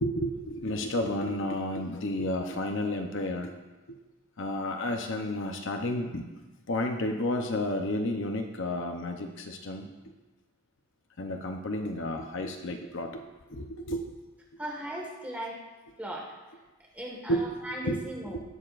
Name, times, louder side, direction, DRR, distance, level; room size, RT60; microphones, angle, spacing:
voice 1, 0.0-3.5 4.4-6.2 6.7-9.9 11.2-13.2 13.5-14.0 17.3-17.5 17.8-18.0 18.2-18.4, left 1 dB, 55° left, 4 dB, 0.7 m, -31 dB
voice 2, 14.6-15.6 16.0-16.3 16.9-18.4, right 1 dB, 5° right, -2 dB, 1.6 m, -37 dB
17.5 x 6.6 x 2.5 m, 1.2 s
head